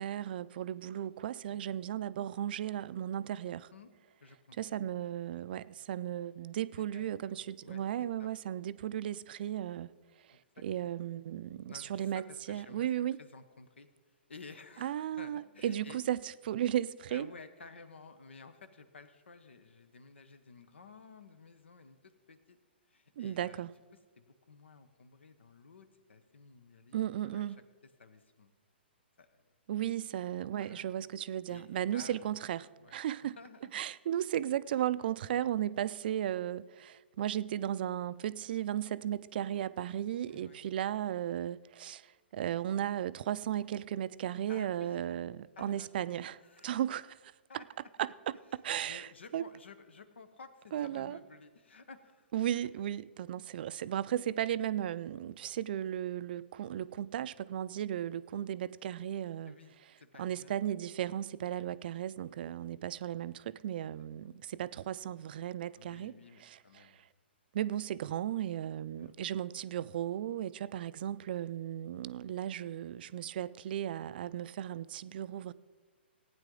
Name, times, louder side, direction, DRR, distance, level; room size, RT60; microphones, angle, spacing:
voice 1, 0.0-3.7 4.6-9.9 10.6-13.2 14.8-17.3 23.2-23.7 26.9-27.6 29.7-33.4 33.7-47.6 48.0-48.1 48.6-49.4 50.7-51.2 52.3-59.6 60.2-66.1 66.4-66.9 67.5-75.5, right 11 dB, 55° right, 0.4 m, -35 dB
voice 2, 4.2-4.6 5.5-5.6 6.8-7.8 8.2-8.3 10.3-10.6 11.7-12.9 13.2-13.9 14.3-16.0 17.1-22.6 22.9-23.7 24.2-27.5 28.0-28.5 29.2-29.5 29.8-30.0 30.5-30.9 31.5-32.3 32.8-33.0 33.4-33.8 40.3-40.6 44.5-45.0 45.6-45.9 46.4-46.8 47.5-47.7 48.7-52.3 52.5-52.6 59.5-60.6 61.4-61.5 63.9-64.1 65.8-67.1 69.0-69.1, left 4 dB, 85° left, 1.0 m, -54 dB
15.5 x 9.2 x 3.8 m
hypercardioid pair, 130°, 6 cm